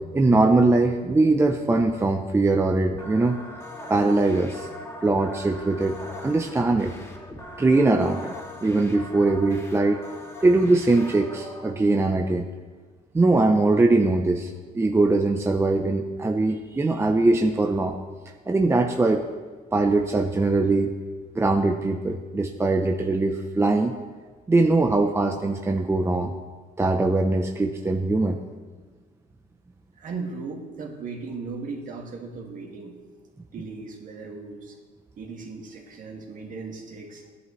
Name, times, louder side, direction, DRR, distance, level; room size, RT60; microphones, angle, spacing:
voice 1, 0.1-3.4 3.9-4.7 5.0-6.0 6.2-6.9 7.6-8.3 8.6-10.0 10.4-12.5 13.1-14.5 14.7-18.0 18.5-19.2 19.7-20.9 21.3-23.9 24.5-26.3 26.8-28.4, right 2 dB, 15° right, 4 dB, 0.7 m, -21 dB
sound 1, 2.9-11.7, left 1 dB, 15° left, 2.4 m, -41 dB
voice 2, 30.0-33.0 33.5-34.8 35.2-37.2, right 4 dB, 50° right, 1 dB, 2.1 m, -37 dB
16.0 x 11.0 x 3.2 m, 1.4 s
cardioid pair, 110°, 17 cm